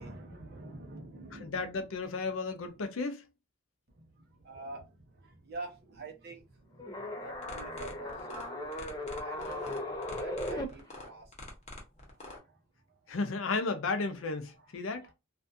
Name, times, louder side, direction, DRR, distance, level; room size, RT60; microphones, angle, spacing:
voice 1, 0.0-1.7 3.9-6.8 7.2-8.7 9.2-9.7 10.1-11.3 12.4-12.6 15.0-15.1, right 3 dB, 50° right, 0.7 m, -46 dB
voice 2, 1.4-3.2 13.1-15.1, left 3 dB, 90° left, 0.6 m, -33 dB
sound 1, 6.8-10.6, left 1 dB, 20° left, 0.4 m, -37 dB
sound 2, 7.3-12.4, left 2 dB, 35° left, 0.7 m, -46 dB
2.5 x 2.3 x 2.5 m
head